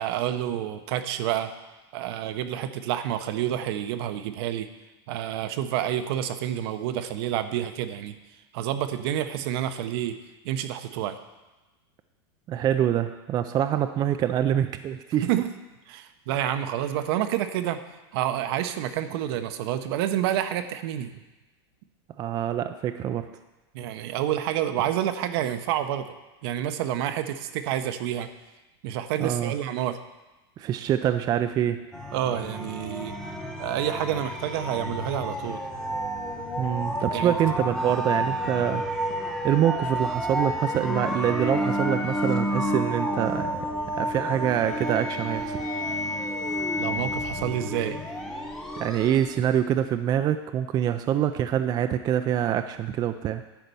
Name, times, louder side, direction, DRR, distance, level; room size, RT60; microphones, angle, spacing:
voice 1, 0.0-1.5 1.9-4.7 5.1-8.2 8.5-10.2 10.4-11.2 15.2-15.5 15.9-17.8 18.1-21.2 23.7-26.1 26.4-28.3 28.8-30.0 32.1-33.1 33.6-35.6 37.1-37.3 46.8-48.0, right 11 dB, 65° right, 9 dB, 0.8 m, -28 dB
voice 2, 12.5-15.3 22.2-23.3 29.2-29.5 30.6-31.8 36.6-38.8 39.4-43.5 43.9-45.6 48.8-53.4, right 10 dB, 30° right, 9 dB, 0.4 m, -25 dB
sound 1, 31.9-49.4, equal, 5° left, 1.0 m, -30 dB
10.5 x 4.3 x 6.8 m, 1.1 s
supercardioid pair, 130°, 14 cm